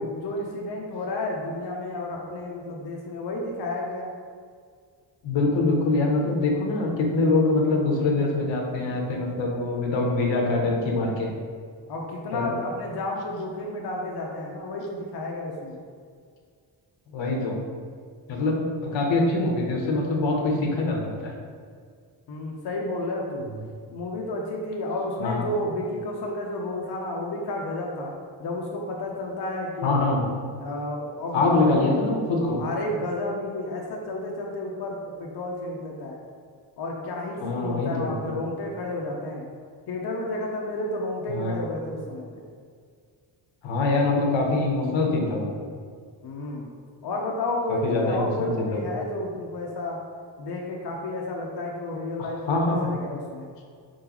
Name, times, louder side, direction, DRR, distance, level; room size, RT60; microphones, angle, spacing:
voice 1, 0.0-4.1 11.9-15.8 22.3-23.5 23.9-28.1 28.4-30.1 30.6-32.1 32.4-36.2 36.8-39.5 39.9-42.4 46.2-46.7 47.0-50.0 50.4-53.5, left 2 dB, 60° left, -2 dB, 0.7 m, -31 dB
voice 2, 5.2-11.3 12.3-12.5 17.1-17.5 18.3-21.3 25.2-25.4 29.8-30.2 31.3-32.6 37.4-38.3 41.3-41.6 43.6-45.5 47.7-48.9 52.2-52.9, left 2 dB, 80° left, 0 dB, 0.9 m, -24 dB
4.5 x 3.8 x 2.9 m, 2.1 s
cardioid pair, 110°, 45 cm